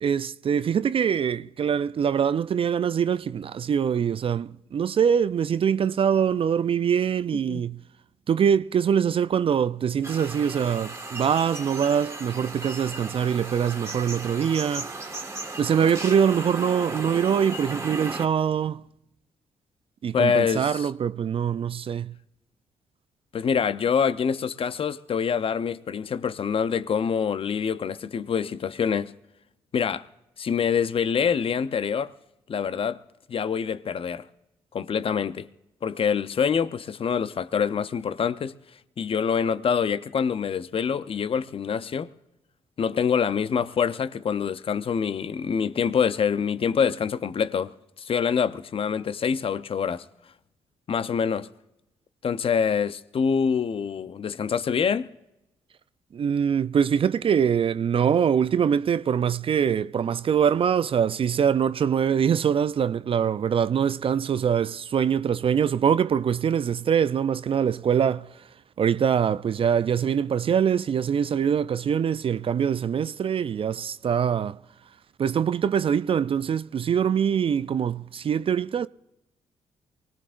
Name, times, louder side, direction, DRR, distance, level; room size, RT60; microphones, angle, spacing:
voice 1, 0.0-7.8 8.3-14.9 15.6-18.8 20.0-22.1 56.1-68.5 68.8-74.6 75.2-78.9, right 8 dB, 45° right, 0.4 m, -23 dB
sound 1, 10.0-18.3, right 2 dB, 25° right, 1.9 m, -36 dB
voice 2, 20.1-20.9 23.3-29.1 29.7-30.1 30.4-32.1 32.5-33.0 33.3-34.3 34.7-35.5 35.8-38.6 39.0-42.1 42.8-50.1 50.9-51.5 52.2-55.1, left 7 dB, 50° left, 0.7 m, -25 dB
24.0 x 18.0 x 2.5 m
hypercardioid pair, 45°, 12 cm